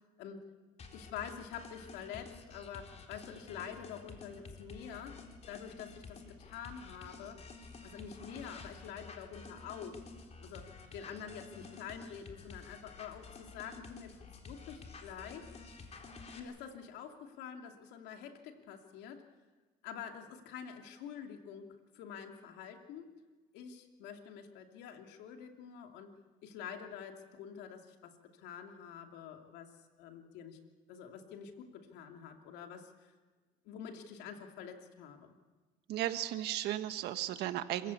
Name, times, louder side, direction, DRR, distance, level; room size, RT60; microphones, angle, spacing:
sound 1, 0.8-16.4, left 4 dB, 40° left, 3.9 m, -51 dB
voice 1, 0.9-7.4 7.8-10.0 10.4-10.7 10.9-15.5 16.3-19.3 19.8-23.1 23.5-30.6 30.9-33.1 33.6-35.3, left 8 dB, 80° left, 4 dB, 2.7 m, -47 dB
voice 2, 35.9-37.9, right 13 dB, 75° right, 10 dB, 1.5 m, -35 dB
27.0 x 16.0 x 8.5 m, 1.3 s
supercardioid pair, 90°, 17 cm